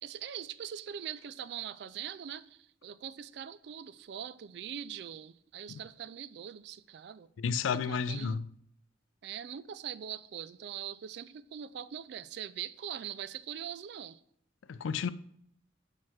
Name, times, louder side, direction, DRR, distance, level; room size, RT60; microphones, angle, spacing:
voice 1, 0.0-7.3 7.7-8.4 9.2-14.2, right 9 dB, 60° right, 0.3 m, -42 dB
voice 2, 7.4-8.5 14.7-15.1, left 6 dB, 80° left, 0.4 m, -32 dB
5.7 x 4.5 x 6.3 m
head